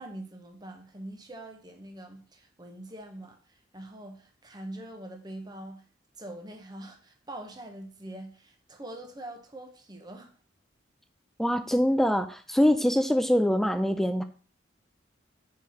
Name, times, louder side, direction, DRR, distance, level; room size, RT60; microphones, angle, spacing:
voice 1, 0.0-5.9 6.2-10.3, right 1 dB, 20° right, 0.9 m, -43 dB
voice 2, 11.4-14.2, equal, ahead, 0.3 m, -24 dB
4.7 x 4.4 x 5.7 m
head